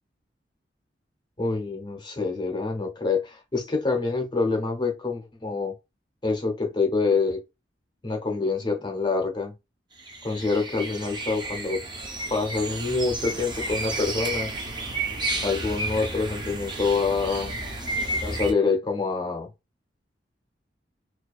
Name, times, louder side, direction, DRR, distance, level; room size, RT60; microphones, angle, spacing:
voice 1, 1.4-5.7 6.2-7.4 8.0-9.5 10.2-11.8 12.3-14.5 15.4-17.5 18.2-19.5, left 4 dB, 25° left, 0.6 m, -26 dB
sound 1, 10.0-18.5, right 2 dB, 25° right, 0.5 m, -32 dB
2.3 x 2.2 x 2.3 m
head